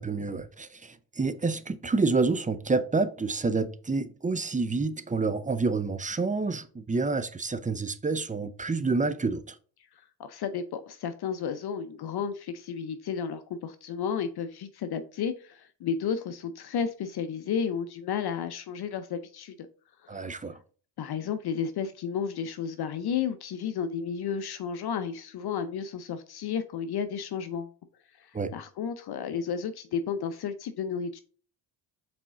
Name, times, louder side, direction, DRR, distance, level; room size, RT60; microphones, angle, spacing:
voice 1, 0.0-9.6 20.1-20.6 28.3-28.5, right 3 dB, 15° right, 0.6 m, -28 dB
voice 2, 10.2-19.5 20.0-20.3 21.0-27.7 28.2-28.3 28.5-31.2, left 7 dB, 55° left, 0.7 m, -32 dB
5.9 x 4.3 x 3.7 m
supercardioid pair, 60°, 46 cm